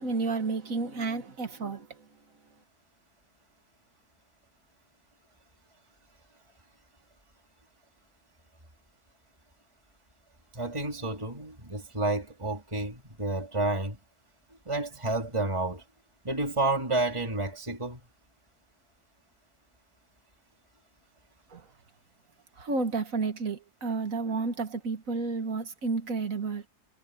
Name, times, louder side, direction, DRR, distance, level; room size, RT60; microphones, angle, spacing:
voice 1, 0.0-1.9 21.5-21.6 22.6-26.6, right 4 dB, 55° right, 2.0 m, -31 dB
voice 2, 10.5-14.0 14.7-15.8 16.2-18.0, right 2 dB, 15° right, 3.4 m, -30 dB
omnidirectional pair, 1.8 m